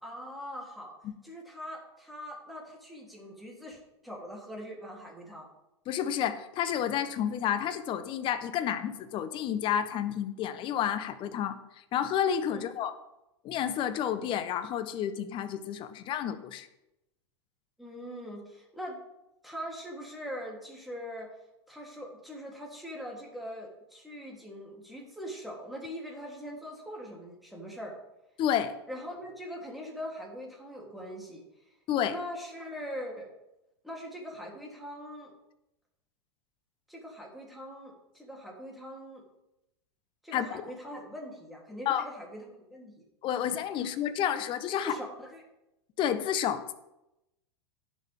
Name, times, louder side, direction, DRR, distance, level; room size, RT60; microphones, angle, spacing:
voice 1, 0.0-0.9 1.2-5.5 12.5-12.6 17.8-19.0 19.4-21.3 21.7-28.0 28.9-31.4 32.1-33.3 33.8-35.3 36.9-39.2 40.2-42.9 43.8-43.9 44.8-45.4, equal, ahead, -2 dB, 3.4 m, -42 dB
voice 2, 5.9-11.6 11.9-12.9 13.4-16.7 28.4-28.8 31.9-32.1 40.3-40.6 41.8-42.0 43.2-45.0 46.0-46.7, left 9 dB, 35° left, 11 dB, 1.0 m, -30 dB
16.5 x 6.3 x 3.7 m, 0.90 s
figure-of-eight pair, 95°, 14 cm